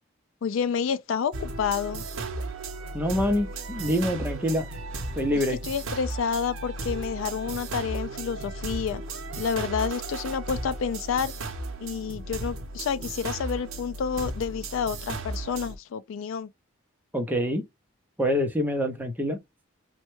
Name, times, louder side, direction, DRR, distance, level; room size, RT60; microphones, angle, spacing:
voice 1, 0.4-2.0 5.3-9.0 9.4-11.3 11.8-16.5, left 6 dB, 65° left, 0.3 m, -29 dB
sound 1, 1.3-15.8, right 2 dB, 75° right, 0.7 m, -35 dB
voice 2, 2.9-4.7 5.2-5.6 17.1-17.6 18.2-19.4, equal, 10° right, 0.6 m, -26 dB
3.1 x 2.2 x 3.0 m
head